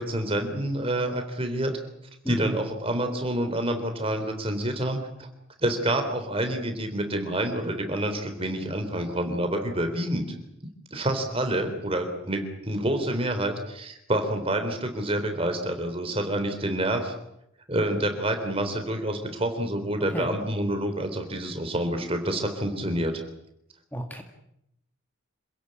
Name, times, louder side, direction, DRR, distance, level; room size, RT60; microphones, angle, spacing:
voice 1, 0.0-1.7 2.3-5.3 5.6-10.2 10.9-17.1 17.7-23.2, right 1 dB, 25° right, 6 dB, 3.6 m, -28 dB
voice 2, 23.9-24.2, equal, 10° left, 4 dB, 1.8 m, -31 dB
27.0 x 16.5 x 8.9 m, 0.81 s
head